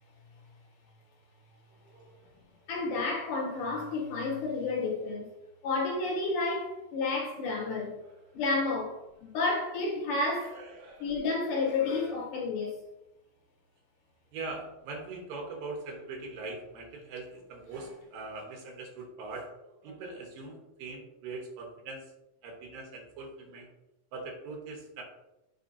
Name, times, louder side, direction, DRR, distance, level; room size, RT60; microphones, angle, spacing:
voice 1, 1.7-2.3 8.0-8.2 10.4-11.2 14.3-22.0 22.4-23.7 24.1-25.0, right 3 dB, 75° right, 0 dB, 2.9 m, -42 dB
voice 2, 2.7-5.3 5.6-7.9 8.3-10.6 11.0-12.8, left 3 dB, 65° left, -2 dB, 2.4 m, -31 dB
8.0 x 4.9 x 2.8 m, 0.92 s
omnidirectional pair, 4.3 m